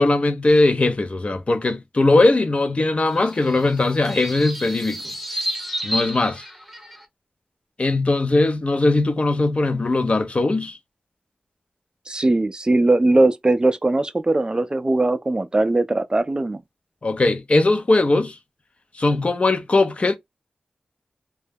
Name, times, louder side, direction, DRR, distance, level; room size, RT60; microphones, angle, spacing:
voice 1, 0.0-5.0 5.8-6.4 7.8-10.8 17.0-18.4 18.9-20.2, left 2 dB, 45° left, 0.5 m, -19 dB
sound 1, 3.1-7.1, equal, ahead, 0.7 m, -31 dB
voice 2, 12.1-16.6, right 2 dB, 30° right, 0.4 m, -20 dB
2.2 x 2.0 x 3.3 m
cardioid pair, 50°, 3 cm